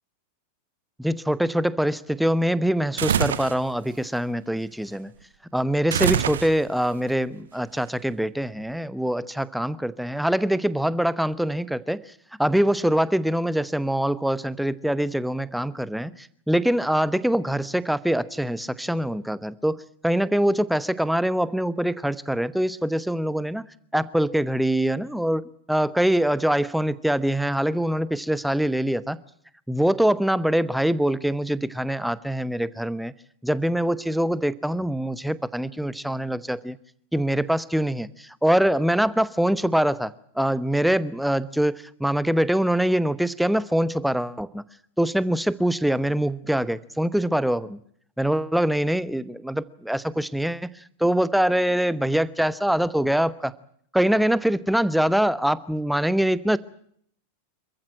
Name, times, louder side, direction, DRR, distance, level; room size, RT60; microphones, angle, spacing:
voice 1, 1.0-5.1 5.5-12.0 12.4-23.7 23.9-29.2 29.7-33.1 33.4-36.8 37.1-44.6 45.0-47.8 48.2-50.7 51.0-53.5 53.9-56.6, right 1 dB, ahead, 17 dB, 1.0 m, -24 dB
sound 1, 3.0-3.6 5.9-6.9, right 8 dB, 65° right, 1.2 m, -24 dB
26.5 x 15.0 x 9.0 m, 0.65 s
figure-of-eight pair, 90°, 0 cm